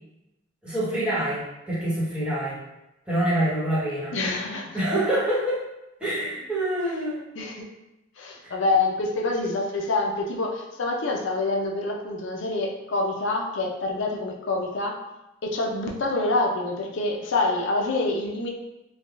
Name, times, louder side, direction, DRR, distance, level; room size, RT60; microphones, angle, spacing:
voice 1, 0.6-2.6 3.1-4.2 4.7-5.6 6.0-7.2 8.4-8.5, right 1 dB, 5° right, -10 dB, 1.1 m, -26 dB
voice 2, 4.1-4.8 7.4-7.7 8.2-15.0 15.4-18.5, left 2 dB, 65° left, 0 dB, 0.5 m, -26 dB
3.4 x 2.2 x 2.4 m, 0.93 s
head